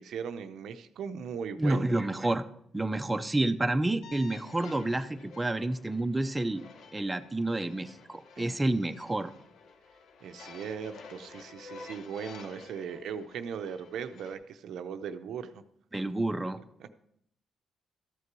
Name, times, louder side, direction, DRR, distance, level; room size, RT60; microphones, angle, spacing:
voice 1, 0.0-1.8 8.4-8.6 10.2-15.6 16.8-16.9, right 7 dB, 75° right, 9 dB, 0.6 m, -38 dB
voice 2, 1.6-2.5 2.7-6.6 6.9-9.3 15.9-16.6, right 2 dB, 15° right, 7 dB, 0.6 m, -29 dB
sound 1, 4.0-14.3, left 4 dB, 70° left, 0.9 m, -51 dB
13.5 x 6.7 x 4.6 m, 0.72 s
cardioid pair, 90°, 0 cm